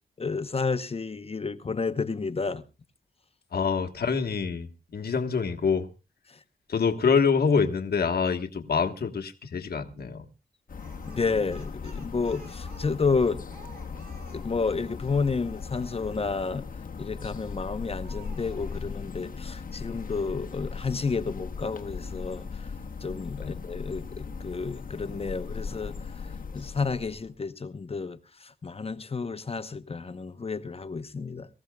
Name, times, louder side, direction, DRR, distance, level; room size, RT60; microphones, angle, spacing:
voice 1, 0.2-2.6 6.3-6.4 11.1-13.4 14.3-16.6 17.0-22.4 23.0-25.9 26.2-31.5, left 4 dB, 40° left, 0.9 m, -31 dB
voice 2, 3.5-5.9 6.7-10.3 23.4-23.5, left 5 dB, 80° left, 1.4 m, -26 dB
sound 1, 10.7-27.3, left 5 dB, 60° left, 1.1 m, -38 dB
Speech, 10.8-15.1 17.1-17.5 18.0-18.9, right 2 dB, 70° right, 5.7 m, -52 dB
24.0 x 15.0 x 2.3 m
wide cardioid pair, 90°, 16 cm